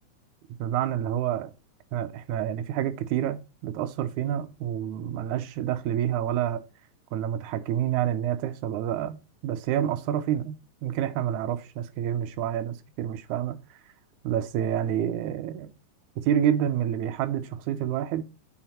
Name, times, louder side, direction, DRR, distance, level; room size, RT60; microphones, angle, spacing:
voice 1, 0.6-1.5 1.9-6.6 7.1-13.6 14.2-15.7 16.2-18.3, right 10 dB, 80° right, 2.1 m, -28 dB
6.1 x 4.9 x 4.3 m
omnidirectional pair, 3.5 m